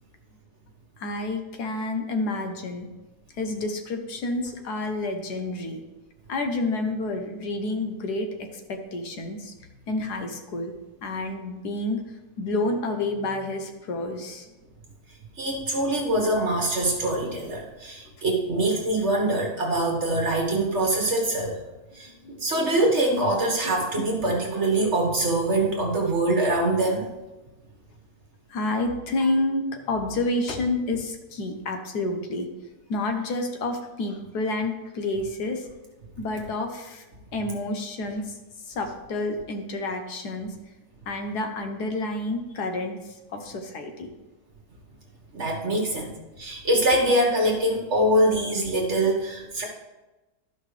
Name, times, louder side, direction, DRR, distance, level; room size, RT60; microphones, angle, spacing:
voice 1, 1.0-2.9 3.3-5.8 6.3-9.5 9.9-10.7 11.0-12.0 12.4-14.5 21.9-22.5 23.6-23.7 28.5-32.5 32.9-35.7 36.2-37.0 37.3-38.4 38.6-40.6 41.1-44.1, left 2 dB, 65° left, 5 dB, 1.4 m, -29 dB
voice 2, 15.4-21.6 21.9-27.1 45.3-49.6, right 1 dB, 45° right, 0 dB, 1.5 m, -24 dB
12.5 x 5.5 x 3.3 m, 1.1 s
omnidirectional pair, 1.9 m